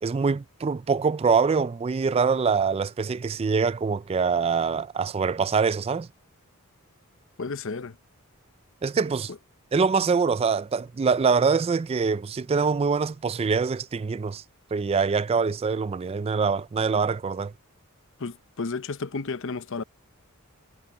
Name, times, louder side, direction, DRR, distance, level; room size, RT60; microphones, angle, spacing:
voice 1, 0.0-6.1 8.8-9.3 9.7-14.4 14.7-17.5, right 5 dB, 25° right, 0.3 m, -24 dB
voice 2, 7.4-8.0 9.3-9.4 18.2-19.8, left 4 dB, 60° left, 0.8 m, -32 dB
head